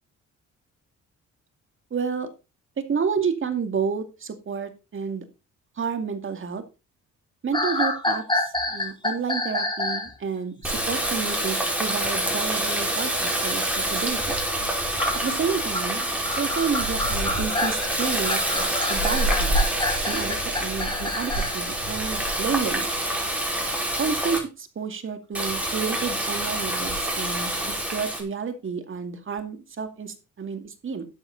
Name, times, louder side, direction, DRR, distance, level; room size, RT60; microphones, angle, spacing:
voice 1, 1.9-2.3 2.8-5.3 5.8-6.6 7.4-14.2 15.2-19.6 20.1-22.9 24.0-31.1, right 6 dB, 40° right, 8 dB, 2.3 m, -30 dB
sound 1, 7.5-10.1 15.0-21.6, left 2 dB, 15° left, 4.3 m, -28 dB
Water tap faucet, 10.6-24.4 25.3-28.2, right 1 dB, 5° right, 5.1 m, -26 dB
12.5 x 8.2 x 4.0 m, 0.29 s
cardioid pair, 90°, 30 cm